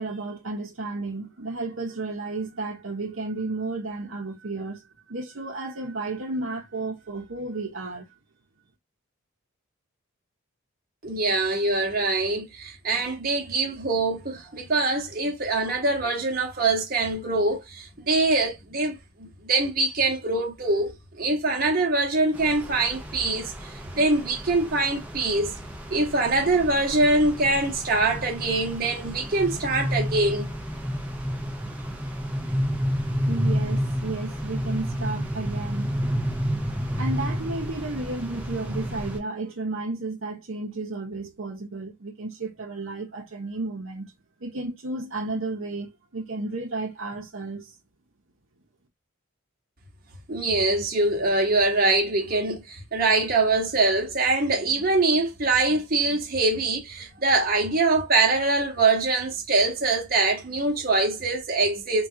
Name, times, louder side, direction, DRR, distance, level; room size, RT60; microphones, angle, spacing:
voice 1, 0.0-4.8 5.1-8.1 33.3-36.0 37.0-44.1 44.4-47.7, right 2 dB, 70° right, 0.8 m, -33 dB
voice 2, 11.0-25.5 25.9-30.5 50.3-62.1, right 3 dB, 40° right, 0.9 m, -24 dB
sound 1, 22.3-39.2, equal, 5° right, 0.6 m, -30 dB
3.7 x 2.3 x 2.7 m
head